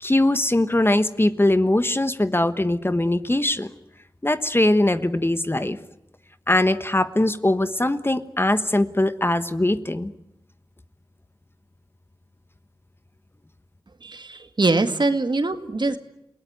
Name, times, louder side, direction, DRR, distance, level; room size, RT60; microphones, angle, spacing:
voice 1, 0.0-3.7 4.2-5.8 6.5-10.1, left 1 dB, 25° left, 12 dB, 1.2 m, -21 dB
voice 2, 14.0-16.0, right 3 dB, 55° right, 9 dB, 2.1 m, -23 dB
29.0 x 18.0 x 9.6 m, 0.85 s
wide cardioid pair, 50°, 9 cm